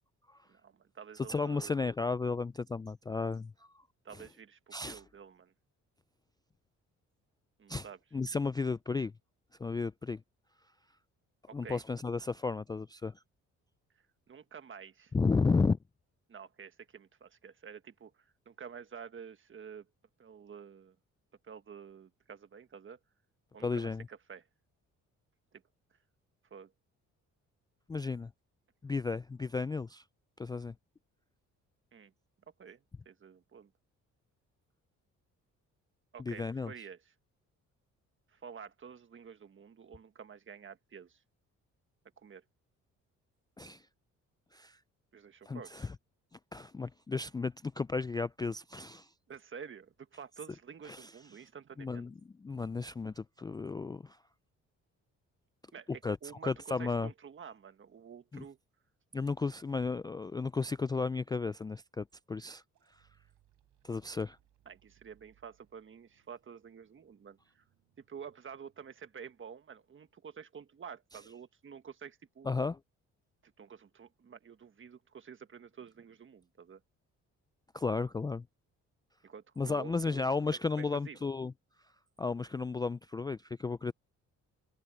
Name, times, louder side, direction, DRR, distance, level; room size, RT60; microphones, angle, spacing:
voice 1, 0.5-1.7 4.0-5.5 7.6-8.0 11.5-11.8 14.3-15.1 16.3-19.9 20.2-20.9 21.4-23.0 23.5-24.5 25.5-25.6 26.5-26.7 31.9-32.1 32.6-33.7 36.1-37.1 38.3-41.2 42.2-42.4 45.1-45.9 49.3-52.1 55.7-58.6 64.6-67.6 68.1-72.5 73.4-76.8 79.2-80.2 80.8-81.3, right 7 dB, 40° right, 1.5 m, -49 dB
voice 2, 1.2-3.7 4.7-5.0 7.7-7.9 8.1-9.1 9.6-10.2 11.5-13.1 15.1-15.8 23.6-24.1 27.9-28.3 28.8-30.0 30.4-30.7 36.2-36.7 43.6-43.8 44.5-44.8 45.5-45.9 46.5-49.1 50.9-51.1 51.8-54.2 56.0-56.2 56.4-57.1 58.3-58.4 59.1-62.6 63.8-64.4 72.4-72.8 77.7-78.4 79.6-81.5 82.2-83.9, left 4 dB, 15° left, 0.3 m, -33 dB
sound 1, 62.7-69.4, right 12 dB, 80° right, 6.6 m, -72 dB
open air
cardioid pair, 90°, 30 cm